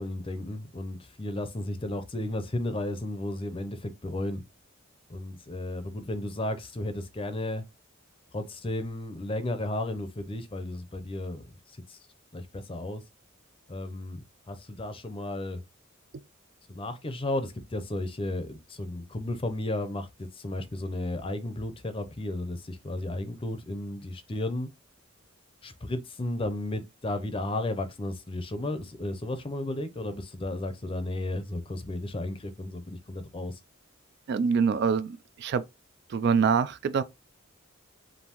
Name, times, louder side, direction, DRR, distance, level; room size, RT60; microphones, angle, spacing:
voice 1, 0.0-4.4 5.1-7.6 8.3-12.0 12.3-13.0 13.7-15.6 16.7-24.7 25.6-33.6, left 1 dB, 25° left, 0.5 m, -34 dB
voice 2, 34.3-35.6 36.1-37.0, right 6 dB, 55° right, 0.3 m, -25 dB
5.3 x 2.6 x 2.9 m
head